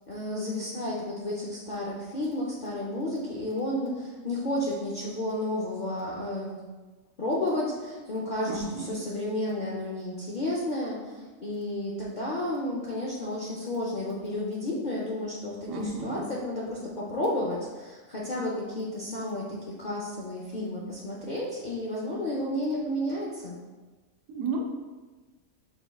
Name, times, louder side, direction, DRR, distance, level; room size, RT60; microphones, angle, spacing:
voice 1, 0.1-6.6 7.2-23.6, left 1 dB, 60° left, -5 dB, 0.5 m, -32 dB
voice 2, 8.5-8.9 15.7-16.3 24.3-24.6, right 3 dB, 80° right, 2 dB, 1.0 m, -32 dB
4.9 x 3.4 x 2.2 m, 1.3 s
omnidirectional pair, 1.4 m